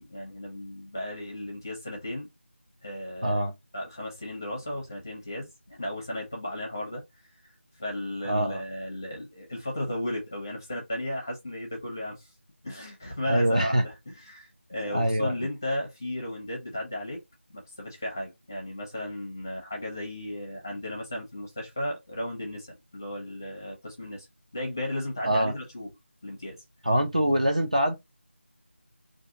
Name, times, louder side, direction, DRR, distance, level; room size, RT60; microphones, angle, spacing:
voice 1, 0.0-2.3 2.8-3.4 3.7-7.0 7.8-12.3 12.6-17.2 17.5-24.3 24.5-25.9 26.2-26.6, left 1 dB, 15° left, 0.6 m, -35 dB
voice 2, 3.2-3.5 8.2-8.6 13.3-13.8 14.9-15.3 25.2-25.5 26.8-28.0, right 1 dB, 35° right, 0.4 m, -24 dB
2.6 x 2.5 x 3.7 m
figure-of-eight pair, 180°, 7 cm